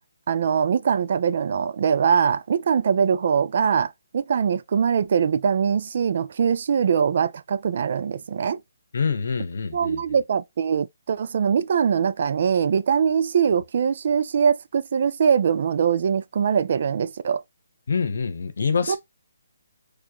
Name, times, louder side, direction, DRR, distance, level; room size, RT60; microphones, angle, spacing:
voice 1, 0.3-8.6 9.7-17.4 18.9-19.0, right 7 dB, 50° right, 0.4 m, -22 dB
voice 2, 8.9-10.0 17.9-19.0, left 5 dB, 65° left, 0.8 m, -25 dB
4.6 x 2.4 x 2.9 m
hypercardioid pair, 155°, 0 cm